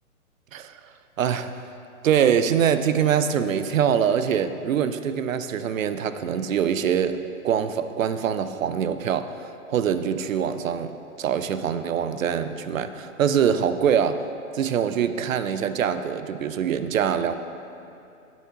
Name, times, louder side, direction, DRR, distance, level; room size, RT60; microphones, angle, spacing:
voice 1, 1.2-1.5 2.0-7.2 7.4-9.3 9.7-14.2 14.5-17.3, right 8 dB, 65° right, 11 dB, 0.5 m, -24 dB
9.7 x 7.2 x 2.7 m, 2.7 s
hypercardioid pair, 155°, 43 cm